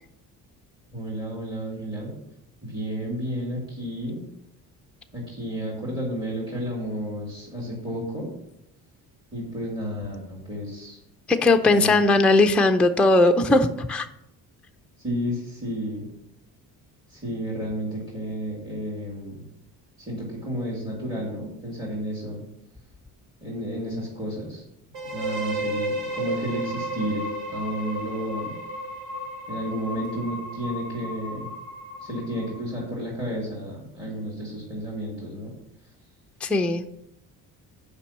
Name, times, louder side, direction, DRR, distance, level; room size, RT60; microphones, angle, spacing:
voice 1, 0.9-2.1 2.6-4.2 5.1-8.3 9.3-11.0 11.6-12.1 15.0-16.0 17.1-19.4 20.0-22.4 23.4-24.6 25.1-28.5 29.5-31.5 32.0-35.5, equal, 10° right, -5 dB, 2.5 m, -32 dB
voice 2, 11.3-14.1 36.4-36.8, left 2 dB, 5° left, 5 dB, 0.4 m, -19 dB
sound 1, 24.9-32.7, right 1 dB, 65° right, 2.3 m, -33 dB
7.1 x 5.3 x 7.2 m, 0.81 s
cardioid pair, 130°, 36 cm